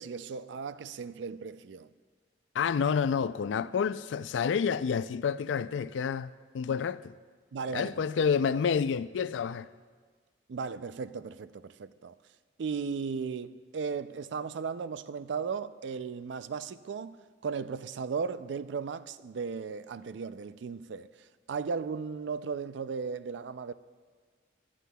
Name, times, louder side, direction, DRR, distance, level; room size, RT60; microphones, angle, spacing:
voice 1, 0.0-1.9 7.5-8.0 10.5-12.1 12.6-23.7, right 5 dB, 75° right, 0.4 m, -36 dB
voice 2, 2.5-7.1 7.7-9.7, left 6 dB, 85° left, 0.3 m, -29 dB
23.5 x 10.0 x 2.3 m
head